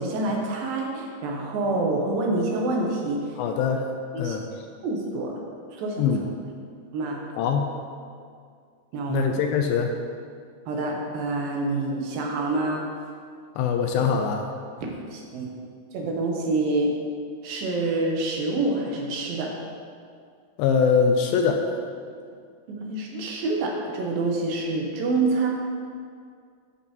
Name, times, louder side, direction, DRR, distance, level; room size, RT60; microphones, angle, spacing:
voice 1, 0.0-3.4 4.1-4.4 4.8-5.4 5.7-6.1 6.9-7.2 8.9-9.3 10.7-12.8 14.8-15.5 15.9-16.9 17.4-19.6 22.7-25.5, right 2 dB, 70° right, -1 dB, 2.5 m, -27 dB
voice 2, 3.4-3.9 4.2-4.4 6.0-6.3 7.4-7.7 9.1-9.9 13.6-14.5 20.6-21.6, left 6 dB, 80° left, 4 dB, 2.2 m, -22 dB
13.0 x 6.0 x 2.9 m, 2.2 s
omnidirectional pair, 4.6 m